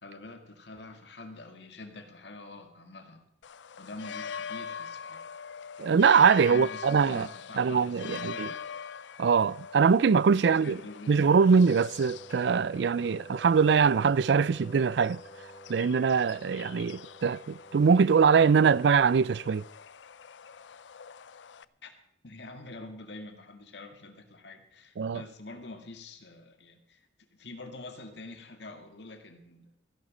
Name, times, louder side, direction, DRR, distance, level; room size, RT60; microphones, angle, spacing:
voice 1, 0.0-3.2 3.8-5.2 6.5-8.8 10.4-11.1 21.8-21.9 22.2-27.1 27.3-29.7, left 2 dB, 70° left, 2.0 m, -45 dB
sound 1, 3.4-21.6, left 7 dB, 85° left, 0.5 m, -44 dB
voice 2, 5.8-7.3 7.6-8.5 9.2-10.8 11.1-15.2 15.7-19.7 25.0-25.2, right 6 dB, 70° right, 0.4 m, -23 dB
Wind instrument woodwind instrument, 11.8-19.4, right 2 dB, 45° left, 5.2 m, -51 dB
15.5 x 11.0 x 5.1 m
head